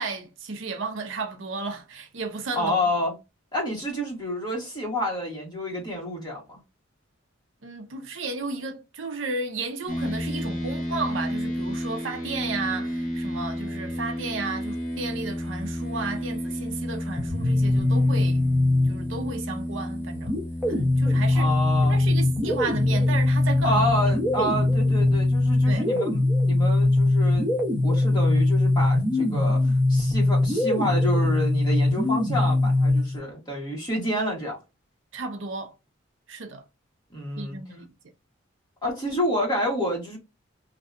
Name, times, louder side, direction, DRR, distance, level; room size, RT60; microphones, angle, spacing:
voice 1, 0.0-2.8 7.6-18.5 18.9-20.4 20.7-21.5 21.9-24.1 24.4-24.6 25.7-25.9 35.1-35.8 36.3-36.6 37.4-37.8, right 3 dB, 65° right, 0.6 m, -33 dB
voice 2, 2.5-3.1 3.5-6.6 21.3-22.0 23.6-27.5 27.8-34.6 37.1-37.6 38.8-40.2, left 1 dB, 20° left, 1.3 m, -29 dB
sound 1, 9.9-25.7, equal, 45° left, 1.0 m, -32 dB
sound 2, 17.2-19.3 20.3-33.2, left 2 dB, 10° right, 0.8 m, -22 dB
2.7 x 2.2 x 2.4 m
head